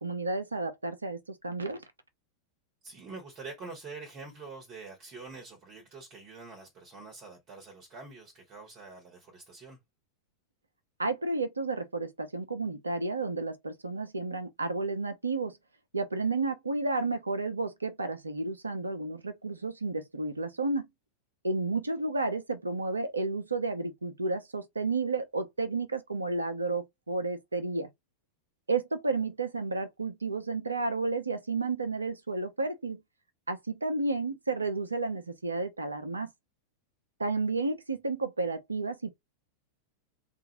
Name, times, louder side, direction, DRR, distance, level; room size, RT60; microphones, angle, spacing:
voice 1, 0.0-1.8 11.0-15.6 15.9-20.9 21.4-27.9 28.7-33.0 33.5-36.3 37.2-39.1, right 3 dB, 80° right, 0.7 m, -32 dB
voice 2, 2.8-9.8, right 4 dB, 35° right, 1.2 m, -46 dB
3.7 x 2.5 x 2.9 m
figure-of-eight pair, 90°, 0 cm